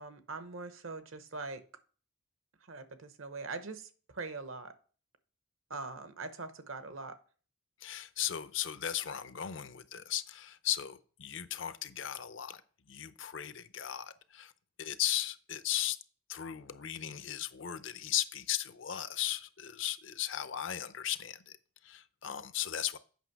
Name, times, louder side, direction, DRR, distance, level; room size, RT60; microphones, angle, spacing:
voice 1, 0.0-1.6 2.7-3.9 4.1-4.7 5.7-7.2, right 3 dB, 75° right, 0.9 m, -42 dB
voice 2, 7.8-12.6 12.9-14.5 14.8-16.0 16.3-21.6 21.8-23.0, left 11 dB, 65° left, 0.6 m, -36 dB
8.3 x 5.9 x 4.6 m
head